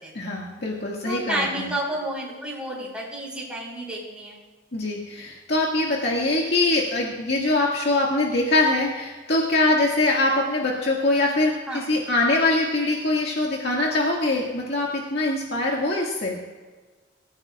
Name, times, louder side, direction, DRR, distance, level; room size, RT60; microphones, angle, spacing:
voice 1, 0.1-1.7 4.7-16.4, left 2 dB, 60° left, -3 dB, 2.1 m, -23 dB
voice 2, 1.0-4.4 11.7-12.0, right 1 dB, 5° right, -4 dB, 4.9 m, -30 dB
26.5 x 15.5 x 2.5 m, 1.3 s
head